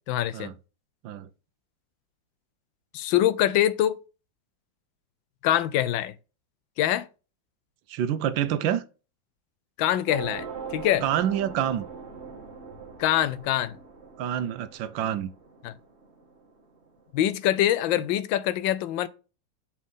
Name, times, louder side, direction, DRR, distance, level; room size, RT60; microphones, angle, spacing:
voice 1, 0.1-0.5 2.9-4.0 5.4-6.1 6.8-7.1 9.8-10.5 10.7-11.0 13.0-13.7 15.6-15.7 17.1-19.1, left 12 dB, 80° left, 1.3 m, -24 dB
voice 2, 7.9-8.8 11.0-11.9 14.2-15.3, right 10 dB, 80° right, 1.4 m, -27 dB
sound 1, 10.1-16.9, right 6 dB, 40° right, 1.3 m, -41 dB
7.2 x 4.3 x 3.6 m
omnidirectional pair, 2.1 m